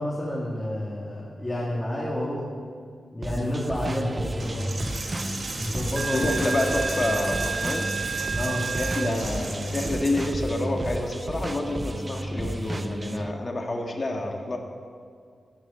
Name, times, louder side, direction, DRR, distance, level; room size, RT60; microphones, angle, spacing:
voice 1, 0.0-2.5 3.1-4.7 5.5-6.3 8.3-8.7, left 1 dB, 15° left, -5 dB, 2.1 m, -29 dB
sound 1, 3.2-13.3, right 1 dB, 20° right, 0.6 m, -33 dB
Coin (dropping), 4.4-10.4, right 3 dB, 45° right, 2.9 m, -31 dB
voice 2, 6.1-7.9 8.8-14.6, left 1 dB, 35° left, 1 dB, 1.8 m, -28 dB
15.5 x 6.7 x 9.6 m, 2.1 s
wide cardioid pair, 135°, 0 cm